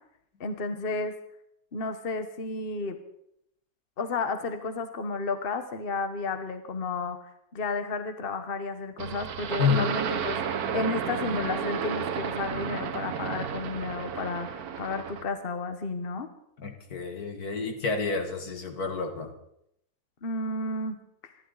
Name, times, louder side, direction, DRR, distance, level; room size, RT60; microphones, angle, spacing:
voice 1, 0.4-1.1 1.7-3.0 4.0-10.4 10.7-16.3 20.2-21.0 21.2-21.3, left 3 dB, 40° left, 8 dB, 1.2 m, -32 dB
sound 1, 9.0-15.3, right 7 dB, 70° right, 1.4 m, -32 dB
voice 2, 9.6-9.9 16.6-19.3, left 5 dB, 70° left, 5 dB, 2.3 m, -29 dB
26.5 x 12.0 x 4.0 m, 0.75 s
omnidirectional pair, 1.7 m